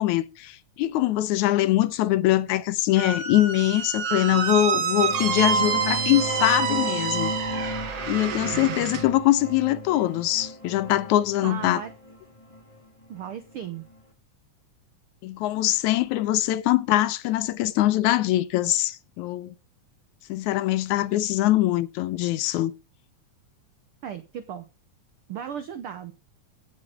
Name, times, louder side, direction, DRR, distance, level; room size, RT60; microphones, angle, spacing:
voice 1, 0.0-7.5 8.1-11.8 15.2-19.5 20.3-22.7, left 14 dB, 75° left, 1.9 m, -23 dB
Squeak, 3.0-9.0, right 7 dB, 55° right, 2.1 m, -27 dB
sound 1, 4.7-14.0, equal, 15° left, 1.5 m, -35 dB
voice 2, 11.4-11.9 13.1-13.8 24.0-24.7 25.3-26.1, right 9 dB, 80° right, 1.2 m, -35 dB
16.5 x 6.4 x 3.6 m
omnidirectional pair, 3.7 m